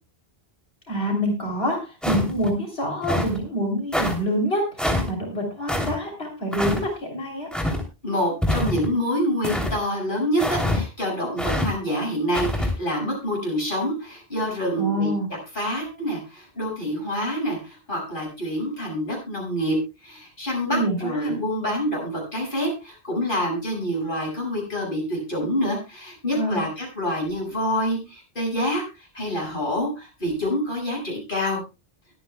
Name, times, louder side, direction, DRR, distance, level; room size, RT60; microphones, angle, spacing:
voice 1, 0.9-7.5 14.8-15.3 20.6-21.4 26.3-26.6, equal, 75° left, 0 dB, 3.7 m, -26 dB
sound 1, 2.0-2.5 3.0-3.4 3.9-4.2 4.8-5.1 5.7-5.9 6.5-6.8 7.5-7.8 8.4-8.9 9.4-9.7 10.4-10.8 11.4-11.7 12.3-12.7, left 1 dB, ahead, 3.1 m, -24 dB
voice 2, 8.0-15.1 15.5-19.8 20.0-31.6, equal, 55° left, -1 dB, 7.2 m, -27 dB
23.0 x 9.4 x 2.3 m, 0.28 s
omnidirectional pair, 1.1 m